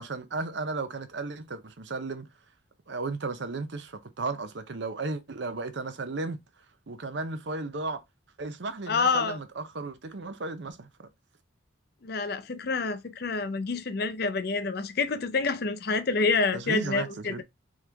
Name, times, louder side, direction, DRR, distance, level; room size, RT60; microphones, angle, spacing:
voice 1, 0.0-2.3 2.9-6.4 6.9-8.0 8.4-11.1 16.5-17.4, right 3 dB, 65° right, 0.7 m, -34 dB
voice 2, 8.9-9.4 12.0-17.3, left 4 dB, 50° left, 0.5 m, -27 dB
3.7 x 3.1 x 3.3 m
head